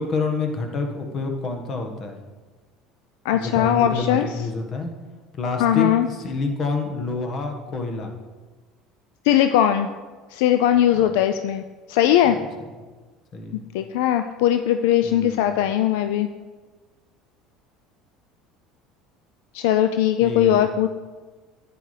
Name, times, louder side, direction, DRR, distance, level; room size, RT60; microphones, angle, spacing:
voice 1, 0.0-2.2 3.3-4.9 5.3-8.1 10.8-10.9 12.2-12.3 13.3-13.6 15.0-15.6 20.2-20.6, left 3 dB, 45° left, 4 dB, 1.5 m, -28 dB
voice 2, 3.2-4.5 5.6-6.1 9.2-9.9 10.3-11.6 11.9-12.4 13.5-16.3 19.5-20.9, left 11 dB, 80° left, 9 dB, 0.4 m, -19 dB
10.5 x 9.2 x 3.3 m, 1.4 s
supercardioid pair, 90°, 0 cm